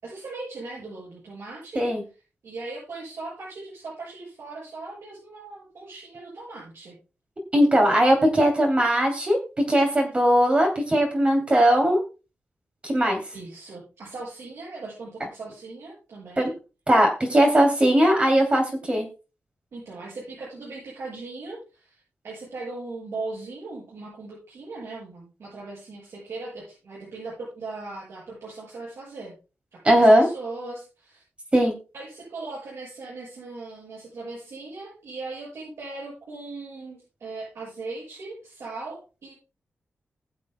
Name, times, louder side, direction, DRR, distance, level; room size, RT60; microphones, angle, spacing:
voice 1, 0.0-1.9 2.4-7.0 13.3-16.5 19.7-29.4 29.7-31.2 31.9-39.3, right 3 dB, 80° right, -6 dB, 7.3 m, -39 dB
voice 2, 7.5-9.4 9.7-12.0 12.8-13.2 16.4-16.5 16.9-19.1 29.8-30.3 31.5-31.7, equal, 25° right, 2 dB, 3.0 m, -19 dB
21.5 x 7.4 x 2.2 m, 0.31 s
wide cardioid pair, 155°, 5 cm